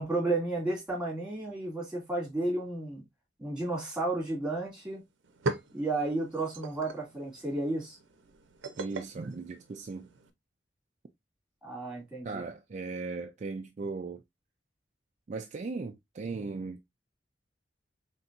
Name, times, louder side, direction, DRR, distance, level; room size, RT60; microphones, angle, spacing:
voice 1, 0.0-3.0 3.4-5.0 5.7-8.0 11.6-12.4, right 2 dB, 5° right, 2.3 m, -32 dB
sound 1, 4.7-4.8 5.1-10.3, right 2 dB, 90° right, 0.6 m, -40 dB
voice 2, 8.8-10.1 12.2-14.2 15.3-16.8, right 4 dB, 40° right, 0.3 m, -37 dB
4.3 x 3.3 x 2.5 m
head